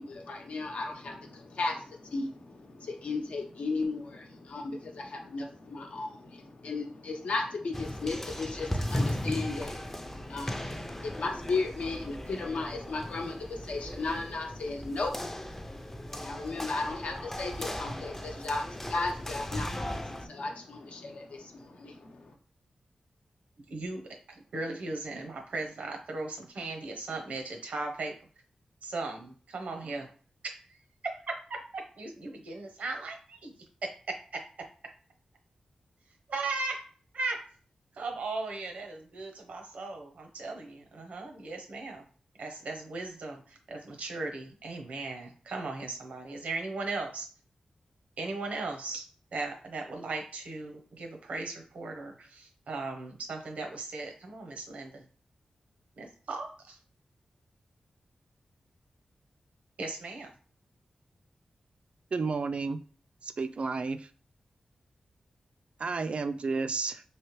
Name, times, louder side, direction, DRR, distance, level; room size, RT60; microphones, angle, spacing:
voice 1, 0.0-22.3, left 3 dB, 75° left, 2 dB, 0.8 m, -35 dB
sound 1, 7.7-20.3, left 1 dB, 15° left, 0.4 m, -37 dB
voice 2, 23.7-24.1 24.5-28.1 28.8-30.1 30.4-30.6 31.0-33.5 34.3-34.4 36.3-36.8 37.1-37.5 37.9-42.0 42.4-47.3 48.2-49.0 49.3-55.1 56.0-56.8 59.8-60.3, right 3 dB, 85° right, 3 dB, 0.8 m, -37 dB
voice 3, 62.1-62.8 63.2-64.1 65.8-67.0, right 4 dB, 60° right, 11 dB, 0.3 m, -31 dB
3.3 x 2.8 x 3.0 m, 0.41 s
cardioid pair, 70°, 2 cm